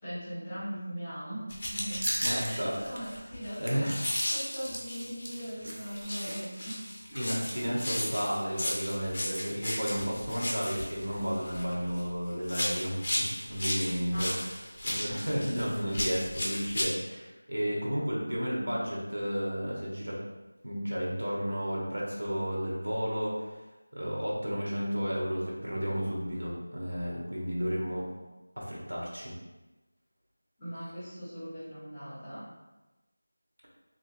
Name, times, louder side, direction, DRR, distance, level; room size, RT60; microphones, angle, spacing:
voice 1, 0.0-2.1 2.4-6.8 14.1-14.5 15.1-15.2 17.1-17.2 30.6-32.5, equal, 10° left, -13 dB, 0.9 m, -40 dB
sound 1, 1.5-5.5 5.9-12.1 12.4-16.8, left 1 dB, 30° left, 0.5 m, -35 dB
sound 2, 2.0-2.5 2.9-3.0 3.4-3.9 5.2-6.3 6.6-6.7 7.1-7.3, right 1 dB, 55° right, 0.6 m, -35 dB
voice 2, 2.2-2.7 3.6-4.0 7.1-14.4 14.8-20.2 20.6-23.3 23.9-28.1 28.6-29.3, equal, 75° right, -4 dB, 1.2 m, -32 dB
3.2 x 2.8 x 2.7 m, 1.1 s
figure-of-eight pair, 175°, 0 cm